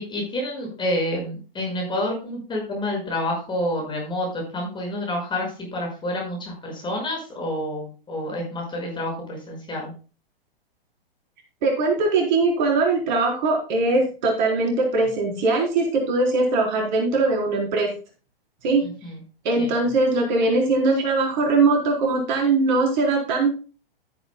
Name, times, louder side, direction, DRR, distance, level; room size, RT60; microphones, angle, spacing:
voice 1, 0.0-9.9 18.8-19.2 19.6-19.7, left 1 dB, 15° left, -1 dB, 5.9 m, -28 dB
voice 2, 11.6-17.9 18.6-18.8 19.4-23.5, right 3 dB, 50° right, 0 dB, 4.2 m, -21 dB
12.5 x 10.5 x 2.2 m, 0.35 s
hypercardioid pair, 115°, 30 cm